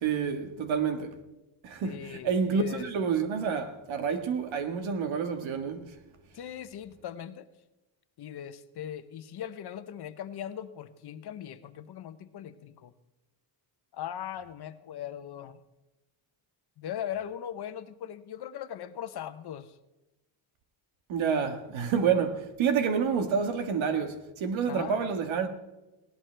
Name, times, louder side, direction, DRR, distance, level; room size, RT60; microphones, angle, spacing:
voice 1, 0.0-1.2 1.6-5.9 21.1-25.5, right 6 dB, 80° right, 1.7 m, -28 dB
voice 2, 1.8-2.9 6.3-7.5 8.2-12.9 13.9-15.6 16.8-19.8 24.7-24.9, left 10 dB, 55° left, 0.9 m, -39 dB
19.5 x 17.5 x 3.4 m
cardioid pair, 150°, 46 cm